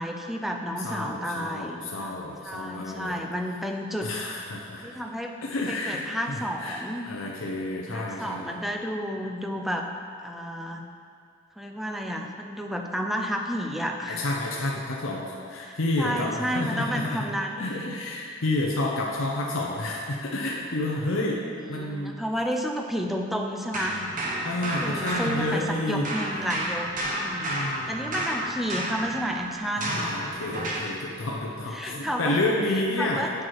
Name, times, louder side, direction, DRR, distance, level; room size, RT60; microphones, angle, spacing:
voice 1, 0.0-2.1 2.4-4.1 4.8-5.4 5.7-7.1 7.9-9.9 10.2-10.8 11.6-14.2 15.6-17.7 21.4-24.0 24.6-27.6 27.9-30.1 31.7-32.4 33.0-33.3, equal, ahead, 2 dB, 0.5 m, -31 dB
voice 2, 0.8-3.2 4.0-5.0 5.4-6.8 7.1-8.6 14.1-17.3 17.6-22.2 24.4-26.1 27.5-28.1 29.8-33.3, left 2 dB, 75° left, -2 dB, 0.7 m, -30 dB
sound 1, 23.7-25.8 26.0-31.0, right 1 dB, 40° right, 1.0 m, -31 dB
8.5 x 4.5 x 4.6 m, 2.3 s
head